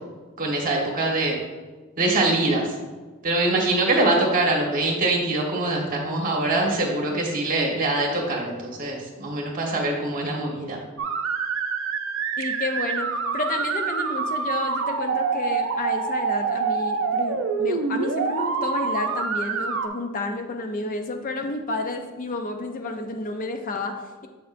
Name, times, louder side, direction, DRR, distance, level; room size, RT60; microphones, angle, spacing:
voice 1, 0.4-1.4 2.0-2.7 3.2-10.8, right 2 dB, 40° right, -1 dB, 1.4 m, -23 dB
sound 1, 11.0-19.9, right 5 dB, 65° right, 0.6 m, -26 dB
voice 2, 12.4-24.3, left 2 dB, 40° left, 5 dB, 0.5 m, -31 dB
7.7 x 6.5 x 2.6 m, 1.3 s
head